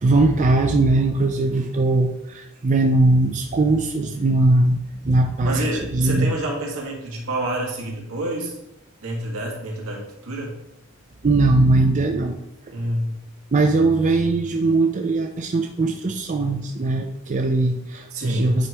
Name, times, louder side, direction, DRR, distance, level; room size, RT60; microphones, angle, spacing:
voice 1, 0.0-4.8 5.0-5.6 5.9-6.3 11.2-12.4 13.5-18.7, right 2 dB, 35° right, 4 dB, 0.4 m, -20 dB
voice 2, 5.4-8.6 9.0-10.6 12.7-13.2 18.1-18.6, right 1 dB, 80° right, -1 dB, 1.7 m, -28 dB
8.9 x 3.1 x 4.6 m, 0.89 s
head